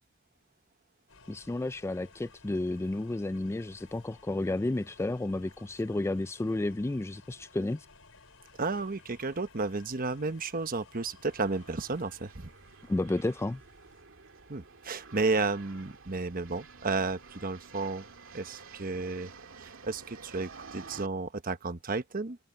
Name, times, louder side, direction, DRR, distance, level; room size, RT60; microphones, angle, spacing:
sound 1, 1.1-14.0, left 4 dB, 75° left, 6.4 m, -57 dB
voice 1, 1.3-7.9 12.9-13.6, left 2 dB, 15° left, 0.3 m, -32 dB
voice 2, 8.6-12.5 14.5-18.0 18.3-19.3 19.6-22.4, right 3 dB, 45° right, 1.1 m, -32 dB
sound 2, 10.9-21.1, right 4 dB, 70° right, 2.5 m, -51 dB
head